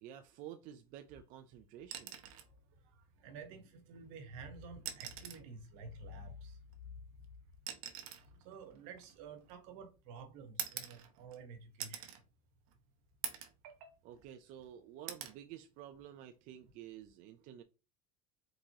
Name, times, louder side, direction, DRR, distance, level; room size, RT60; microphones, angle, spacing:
voice 1, 0.0-2.2 14.0-17.6, right 11 dB, 45° right, 0.4 m, -51 dB
sound 1, 1.8-2.5 4.0-4.1 4.7-5.5 6.7-9.8 10.6-11.4 11.8-12.2 12.7-12.8 13.2-13.6 14.0-14.7 15.1-15.4 16.9-17.1, right 10 dB, 85° right, 0.9 m, -45 dB
voice 2, 3.2-6.6 8.4-12.1 13.6-13.9, right 3 dB, 65° right, 1.2 m, -50 dB
4.6 x 3.8 x 2.8 m
cardioid pair, 155°, 18 cm